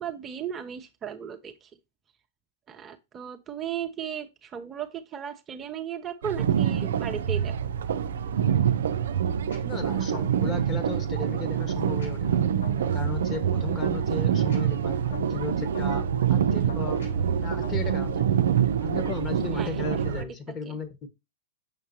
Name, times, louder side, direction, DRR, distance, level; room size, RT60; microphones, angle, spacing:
voice 1, 0.0-1.7 2.7-7.5 19.5-19.8 20.2-20.3 20.6-20.8, right 8 dB, 25° right, 0.8 m, -36 dB
sound 1, 6.2-20.2, right 8 dB, 70° right, 0.5 m, -26 dB
sound 2, 9.5-19.4, left 4 dB, 80° left, 4.2 m, -47 dB
voice 2, 9.6-12.5 12.8-17.0 17.4-18.2 18.8-21.1, left 4 dB, 25° left, 1.5 m, -36 dB
6.6 x 5.6 x 2.8 m
hypercardioid pair, 105°, 0 cm